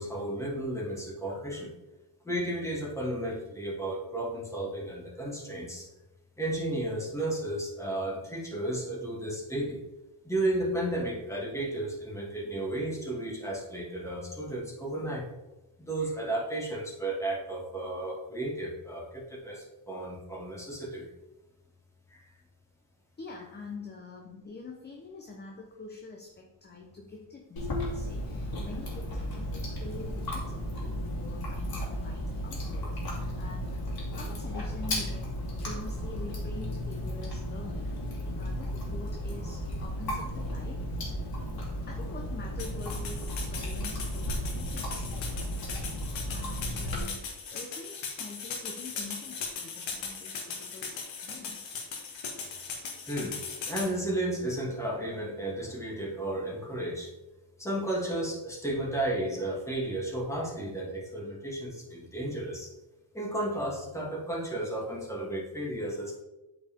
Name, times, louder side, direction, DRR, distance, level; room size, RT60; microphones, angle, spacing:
voice 1, 0.0-1.7 2.2-5.9 6.4-9.8 10.2-15.3 15.8-21.1 22.1-22.3 53.1-53.4 53.6-57.1 57.6-62.7 63.1-66.2, right 1 dB, 5° left, -3 dB, 2.1 m, -33 dB
voice 2, 23.2-33.8 34.1-35.4 35.6-41.0 41.9-45.8 46.2-50.9 51.2-51.7, left 3 dB, 20° left, 2 dB, 0.8 m, -45 dB
Chewing mastication, 27.6-47.0, equal, 50° left, 2.5 m, -34 dB
sound 1, 42.6-53.9, left 5 dB, 80° left, 1.7 m, -39 dB
8.5 x 4.9 x 3.7 m, 0.99 s
cardioid pair, 110°, 45 cm